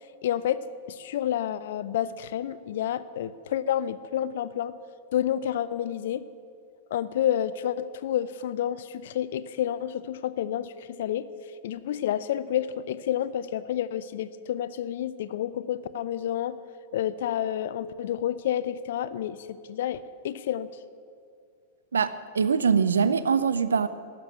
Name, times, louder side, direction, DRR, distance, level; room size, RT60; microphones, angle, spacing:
voice 1, 0.2-4.7 5.1-6.3 6.9-11.3 11.6-16.6 16.9-20.7, left 10 dB, 60° left, 15 dB, 0.5 m, -29 dB
voice 2, 21.9-23.9, right 6 dB, 70° right, 14 dB, 0.5 m, -23 dB
12.5 x 6.1 x 9.6 m, 2.4 s
figure-of-eight pair, 95°, 0 cm